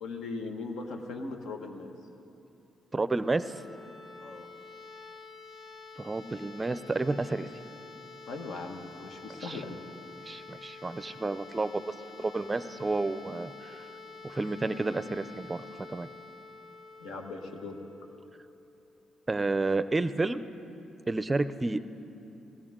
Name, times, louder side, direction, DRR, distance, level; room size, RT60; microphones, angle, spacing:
voice 1, 0.0-1.9 4.2-4.5 8.3-9.8 17.0-17.8, left 3 dB, 80° left, 3 dB, 1.5 m, -39 dB
voice 2, 2.9-3.4 6.0-7.5 9.4-9.6 10.3-11.8 12.2-13.8 14.2-16.1 19.3-20.4 21.1-21.8, right 2 dB, 20° right, 13 dB, 0.5 m, -30 dB
sound 1, 3.1-18.9, left 4 dB, 45° left, 1.9 m, -48 dB
20.0 x 16.5 x 3.7 m, 2.8 s
cardioid pair, 90°, 0 cm